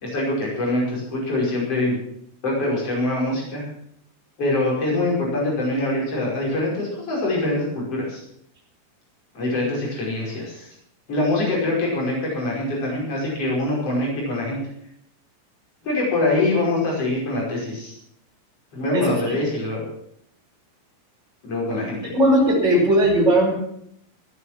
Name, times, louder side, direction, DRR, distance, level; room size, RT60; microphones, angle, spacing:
voice 1, 0.0-2.0 2.4-3.7 4.4-8.2 9.3-10.7 11.1-14.6 15.8-17.9 18.7-19.8 21.4-22.1, left 2 dB, 40° left, -3 dB, 6.3 m, -24 dB
voice 2, 18.9-19.4 22.1-23.5, right 1 dB, 20° right, -3 dB, 5.4 m, -18 dB
16.0 x 9.5 x 7.5 m, 0.70 s
omnidirectional pair, 4.0 m